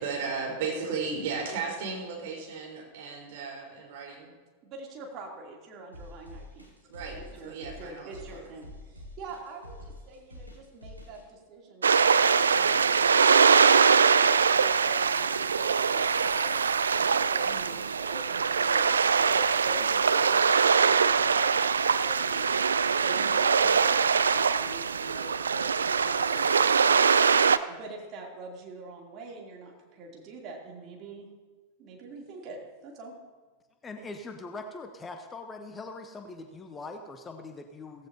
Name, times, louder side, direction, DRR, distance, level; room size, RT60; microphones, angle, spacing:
voice 1, 0.0-4.3 6.9-8.5, right 5 dB, 50° right, -2 dB, 4.5 m, -35 dB
voice 2, 4.6-6.7 6.9-16.6 16.9-21.5 22.0-22.5 23.0-27.3 27.7-31.3 31.8-33.2, right 2 dB, 35° right, -1 dB, 3.1 m, -45 dB
sound 1, 5.9-11.2, left 1 dB, 90° right, 2.1 m, -46 dB
sound 2, 11.8-27.6, right 6 dB, 70° right, 0.4 m, -23 dB
voice 3, 33.8-38.1, left 3 dB, 20° left, 6 dB, 0.9 m, -42 dB
16.5 x 15.5 x 2.9 m, 1.3 s
figure-of-eight pair, 90°, 0 cm